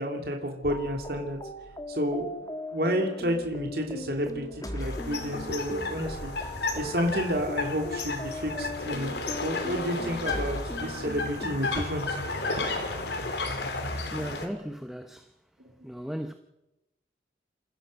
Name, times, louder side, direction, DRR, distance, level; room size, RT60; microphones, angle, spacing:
voice 1, 0.0-1.4 1.9-6.3 6.7-9.1 9.4-12.2, equal, 55° right, 2.9 m, -30 dB
sound 1, 0.6-11.9, left 1 dB, 20° left, 1.6 m, -39 dB
sound 2, 4.8-14.5, left 3 dB, 70° left, 3.3 m, -33 dB
voice 2, 14.1-15.3 15.8-16.3, equal, ahead, 0.8 m, -36 dB
28.0 x 15.0 x 6.5 m
head